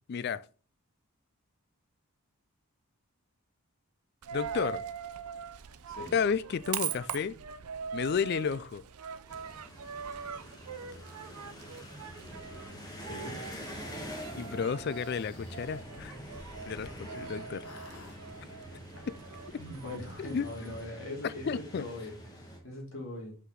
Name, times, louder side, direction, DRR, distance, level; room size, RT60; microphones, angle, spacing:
voice 1, 0.1-0.5 4.3-4.8 6.1-7.4 7.9-8.8 14.4-16.2 16.7-17.7 19.1-19.2 20.2-20.5 21.2-21.8, left 6 dB, 45° left, 0.3 m, -32 dB
Coin (dropping), 4.2-20.9, right 7 dB, 90° right, 0.6 m, -42 dB
sound 1, 9.3-22.6, equal, 15° left, 1.4 m, -46 dB
voice 2, 13.0-13.4 19.6-23.3, left 1 dB, 60° left, 2.6 m, -41 dB
sound 2, 14.8-17.3 17.6-18.2, left 3 dB, 80° left, 1.2 m, -52 dB
5.8 x 5.5 x 3.9 m
head